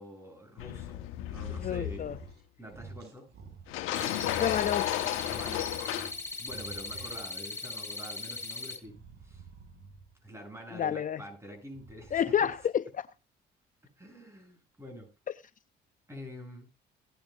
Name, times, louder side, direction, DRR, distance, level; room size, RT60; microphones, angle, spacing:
voice 1, 0.0-2.1 2.6-3.3 5.3-8.9 9.2-9.4 10.2-12.5 14.0-15.1 16.1-16.7, equal, 15° right, 7.8 m, -46 dB
sound 1, 0.6-2.3 3.7-6.1, left 14 dB, 85° left, 1.1 m, -33 dB
sound 2, 1.2-1.7 2.0-2.4 2.7-5.1 5.5-7.4 8.8-10.2 11.6-12.7, right 5 dB, 60° right, 4.9 m, -51 dB
voice 2, 1.6-2.1 4.4-4.9 10.7-11.2 12.1-13.0, left 9 dB, 40° left, 0.6 m, -29 dB
sound 3, 3.9-8.8, left 3 dB, 15° left, 2.7 m, -39 dB
17.0 x 11.0 x 2.5 m
supercardioid pair, 75°, 20 cm